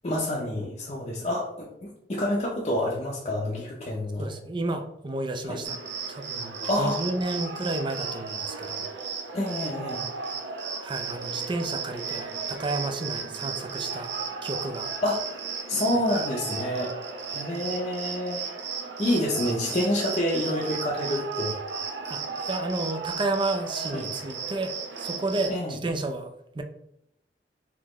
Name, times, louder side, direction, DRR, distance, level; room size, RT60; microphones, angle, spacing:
voice 1, 0.0-4.3 5.4-5.6 6.6-7.0 9.3-10.0 15.0-16.9 17.3-18.4 19.0-21.6 23.9-24.1 25.5-25.7, left 1 dB, 35° left, -4 dB, 0.6 m, -28 dB
voice 2, 4.2-5.8 6.1-8.9 10.8-14.1 14.4-14.9 22.1-26.6, right 2 dB, 30° right, 6 dB, 0.4 m, -31 dB
Cricket, 5.6-25.5, right 5 dB, 80° right, 0.6 m, -34 dB
4.1 x 2.9 x 3.0 m, 0.78 s
head